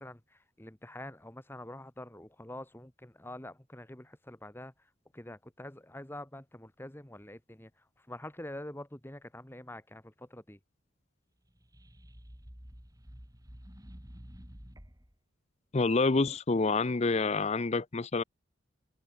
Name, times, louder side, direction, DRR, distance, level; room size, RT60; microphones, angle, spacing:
voice 1, 0.0-4.7 5.1-7.7 8.0-10.6, left 1 dB, 10° left, 1.4 m, -46 dB
sound 1, 11.5-15.1, equal, 20° right, 4.2 m, -50 dB
voice 2, 15.7-18.2, left 3 dB, 35° left, 0.6 m, -27 dB
head